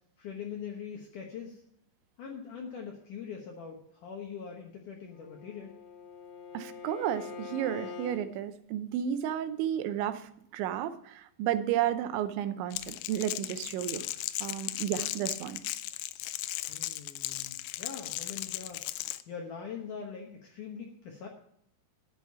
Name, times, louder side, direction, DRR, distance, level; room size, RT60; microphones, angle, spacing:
voice 1, 0.2-1.6 2.2-5.8 16.7-21.3, left 6 dB, 70° left, 1 dB, 2.0 m, -42 dB
Bowed string instrument, 5.0-8.2, left 5 dB, 35° left, 2.3 m, -44 dB
voice 2, 6.5-14.1 14.4-15.6, right 10 dB, 85° right, 11 dB, 3.1 m, -32 dB
Crackle, 12.7-19.2, left 16 dB, 85° left, 2.3 m, -37 dB
11.0 x 9.1 x 5.6 m, 0.70 s
omnidirectional pair, 5.3 m